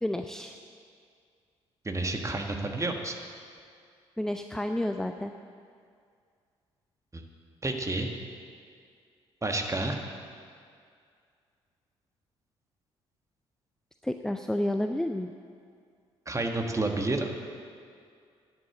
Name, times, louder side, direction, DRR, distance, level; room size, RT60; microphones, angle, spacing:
voice 1, 0.0-0.6 4.2-5.3 14.0-15.3, left 1 dB, 5° left, 6 dB, 0.5 m, -30 dB
voice 2, 1.8-3.1 7.1-7.2 7.6-8.1 9.4-10.0 16.2-17.3, right 2 dB, 20° right, 3 dB, 1.6 m, -30 dB
11.0 x 8.1 x 8.0 m, 2.2 s
figure-of-eight pair, 45°, 14 cm